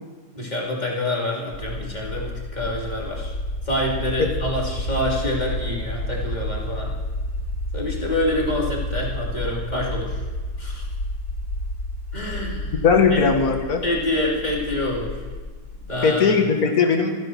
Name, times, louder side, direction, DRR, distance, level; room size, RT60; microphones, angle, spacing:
voice 1, 0.3-3.3 3.6-7.0 7.7-10.2 10.6-10.9 12.1-12.8 13.1-13.2 13.8-15.2 15.8-16.4, left 1 dB, 25° left, -3 dB, 3.2 m, -26 dB
sound 1, 1.5-15.9, left 1 dB, 75° left, 2.2 m, -30 dB
voice 2, 12.8-13.8 16.0-17.1, left 5 dB, 60° left, 4 dB, 2.1 m, -18 dB
27.0 x 9.9 x 4.6 m, 1.4 s
omnidirectional pair, 1.8 m